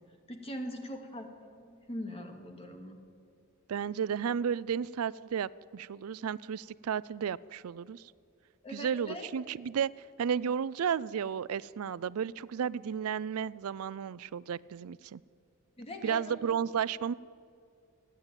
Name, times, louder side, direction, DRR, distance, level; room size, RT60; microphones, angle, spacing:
voice 1, 0.3-3.0 8.6-9.3 15.8-16.3, left 1 dB, 25° left, 4 dB, 2.4 m, -41 dB
voice 2, 3.7-8.0 8.7-9.9 10.2-15.2 16.0-17.1, right 7 dB, 70° right, 19 dB, 0.4 m, -33 dB
29.0 x 10.5 x 9.0 m, 2.4 s
head